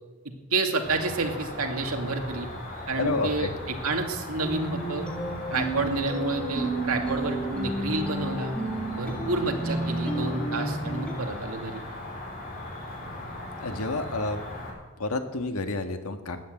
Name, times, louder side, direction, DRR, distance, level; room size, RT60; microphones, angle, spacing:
voice 1, 0.5-2.5 2.9-5.1 5.5-8.6 9.0-11.8, right 3 dB, 85° right, 3 dB, 2.4 m, -29 dB
Cricket, 0.8-14.7, left 1 dB, 40° left, 4.5 m, -38 dB
voice 2, 3.0-3.5 13.6-14.4 15.0-16.4, left 2 dB, 85° left, 6 dB, 1.6 m, -29 dB
sound 1, 4.4-11.1, right 2 dB, 5° left, 2.1 m, -32 dB
13.5 x 10.0 x 9.2 m, 1.2 s
head